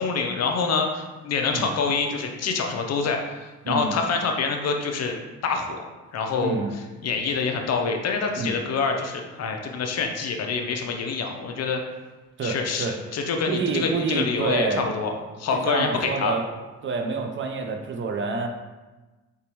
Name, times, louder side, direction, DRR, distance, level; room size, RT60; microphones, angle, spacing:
voice 1, 0.0-3.4 3.7-5.2 5.4-5.8 6.1-11.8 12.4-15.1 15.4-16.4, left 4 dB, 55° left, 3 dB, 0.6 m, -26 dB
voice 2, 6.4-6.7 8.4-8.6 12.4-13.0 13.4-14.9 15.5-16.4 16.8-18.5, right 4 dB, 40° right, 4 dB, 0.6 m, -27 dB
4.0 x 3.5 x 3.0 m, 1.2 s
cardioid pair, 90°, 30 cm